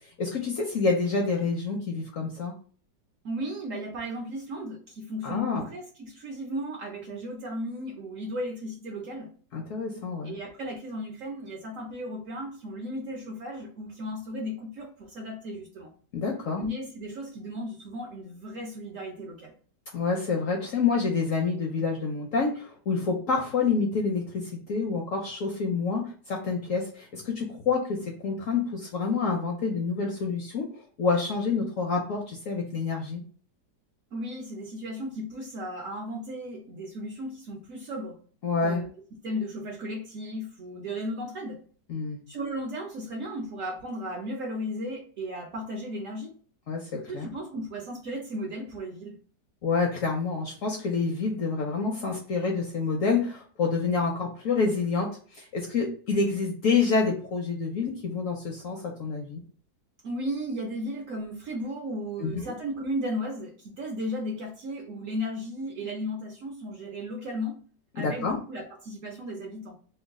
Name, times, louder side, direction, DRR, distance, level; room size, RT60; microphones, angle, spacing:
voice 1, 0.2-2.5 5.2-5.7 9.5-10.4 16.1-16.6 19.9-30.7 31.0-33.2 38.4-38.8 41.9-42.2 46.7-47.3 49.6-59.4 62.2-62.4 68.0-68.4, left 4 dB, 65° left, 1 dB, 0.8 m, -28 dB
voice 2, 3.2-9.3 10.2-15.9 16.5-19.5 34.1-38.2 38.6-38.9 39.2-41.6 42.3-46.3 47.1-49.2 60.0-67.6 67.9-69.8, equal, 65° right, 0 dB, 0.8 m, -35 dB
3.0 x 2.2 x 3.5 m, 0.43 s
omnidirectional pair, 1.9 m